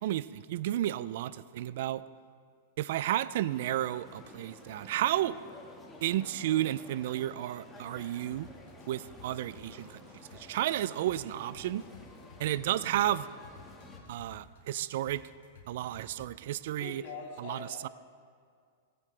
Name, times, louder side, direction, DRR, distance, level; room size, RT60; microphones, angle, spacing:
voice 1, 0.0-2.0 2.8-5.4 6.0-8.5 8.9-10.0 10.3-11.9 12.4-13.3 14.1-15.2 15.7-17.0 17.4-17.9, right 13 dB, 60° right, 17 dB, 0.4 m, -32 dB
sound 1, 3.5-14.0, left 2 dB, 10° left, 1.7 m, -52 dB
sound 2, 8.3-16.3, left 7 dB, 80° left, 2.7 m, -54 dB
voice 2, 16.8-17.9, left 5 dB, 50° left, -3 dB, 3.2 m, -43 dB
17.5 x 16.5 x 3.3 m, 2.1 s
supercardioid pair, 160°, 0 cm